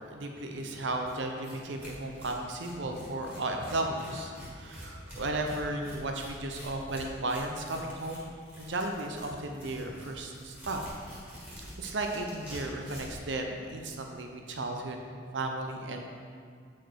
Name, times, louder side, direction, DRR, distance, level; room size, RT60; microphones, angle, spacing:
voice 1, 0.1-8.2 8.6-10.8 11.8-15.0 15.3-16.0, right 2 dB, 90° right, 3 dB, 0.7 m, -34 dB
Tearing, 1.1-1.2 1.4-1.5 1.8-13.2, equal, 10° right, 1.7 m, -47 dB
8.2 x 4.5 x 4.6 m, 2.1 s
head